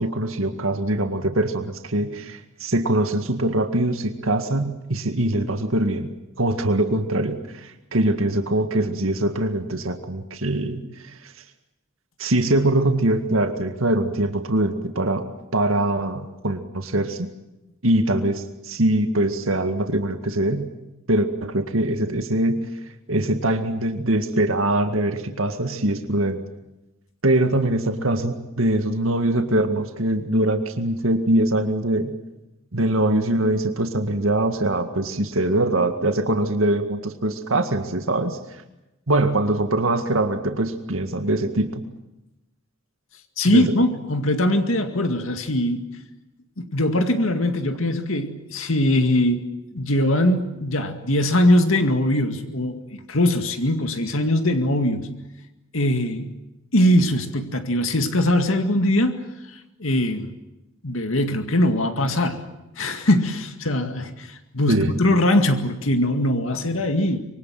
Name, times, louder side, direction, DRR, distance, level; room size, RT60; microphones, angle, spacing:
voice 1, 0.0-6.1 6.4-11.1 12.2-15.3 15.5-17.3 17.8-20.7 21.1-22.6 23.1-26.4 27.2-32.1 32.7-38.6 39.1-41.8 43.5-43.6 64.7-65.0, right 1 dB, 85° right, 7 dB, 2.0 m, -23 dB
voice 2, 43.4-45.9 46.6-55.1 55.7-56.3 56.7-59.2 59.5-60.3 60.8-62.5 62.8-67.2, left 1 dB, 85° left, 7 dB, 2.1 m, -21 dB
25.5 x 24.0 x 7.7 m, 0.95 s
head